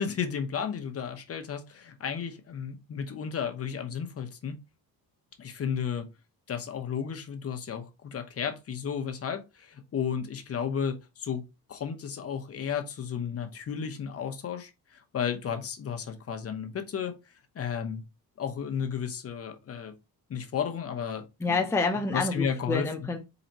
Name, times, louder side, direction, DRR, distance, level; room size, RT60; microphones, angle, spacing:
voice 1, 0.0-4.6 5.4-6.1 6.5-11.4 11.7-17.1 17.5-18.0 18.4-19.9 20.3-21.6 22.1-22.9, left 7 dB, 40° left, 0.9 m, -33 dB
voice 2, 21.4-23.2, left 3 dB, 5° left, 0.6 m, -28 dB
4.3 x 3.9 x 2.9 m
cardioid pair, 140°, 36 cm